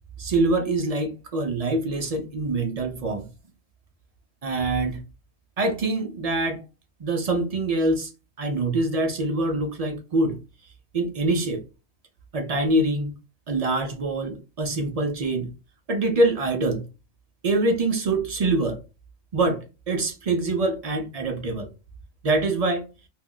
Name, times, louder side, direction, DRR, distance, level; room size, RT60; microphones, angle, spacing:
voice 1, 0.2-3.3 4.4-5.0 5.6-6.6 7.0-8.1 8.4-10.4 10.9-11.6 12.3-13.2 13.5-15.5 15.9-16.9 17.4-18.8 19.3-21.7 22.2-22.8, right 2 dB, 60° right, 5 dB, 0.4 m, -24 dB
2.5 x 2.1 x 3.5 m, 0.30 s
omnidirectional pair, 1.1 m